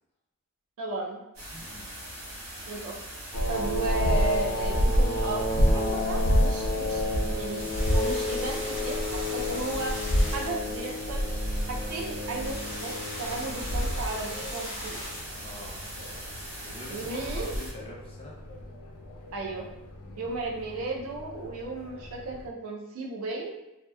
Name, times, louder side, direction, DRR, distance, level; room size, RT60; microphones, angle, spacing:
voice 1, 0.8-1.2 2.7-3.0 3.5-7.6 7.9-10.0 10.3-11.2 11.7-15.0 16.9-17.5 19.3-19.7 20.2-23.5, right 2 dB, 75° right, -2 dB, 0.5 m, -34 dB
sound 1, 1.3-17.7, right 1 dB, 90° right, 1.0 m, -41 dB
voice 2, 1.5-1.9 15.4-15.8 16.6-18.4 20.0-20.3, equal, 25° left, -5 dB, 0.6 m, -44 dB
sound 2, 3.3-22.5, equal, 80° left, 0.5 m, -29 dB
sound 3, 7.6-17.0, equal, 10° right, 0.7 m, -41 dB
2.7 x 2.1 x 2.2 m, 0.94 s
head